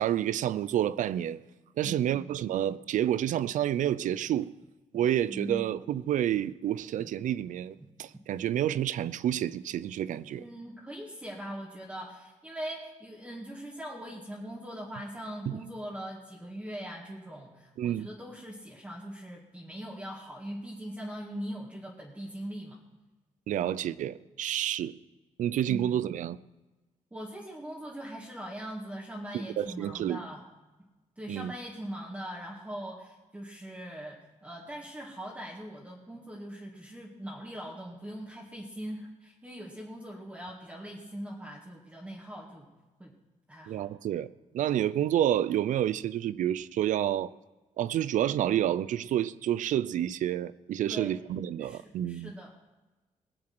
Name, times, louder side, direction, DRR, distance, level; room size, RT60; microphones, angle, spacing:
voice 1, 0.0-1.4 1.8-4.5 4.9-10.4 15.5-15.6 17.8-18.1 23.5-25.0 25.4-26.4 29.3-30.2 31.3-31.5 43.7-44.3 44.5-47.3 47.8-52.3, right 11 dB, 80° right, 0.5 m, -29 dB
voice 2, 5.3-5.8 7.0-7.1 7.8-7.9 10.3-22.8 25.7-26.0 27.1-30.4 31.2-42.7 43.0-43.1 43.5-43.9 50.9-51.2 51.6-52.5, equal, 10° right, 2.0 m, -41 dB
20.0 x 7.7 x 6.1 m
cardioid pair, 120°, 13 cm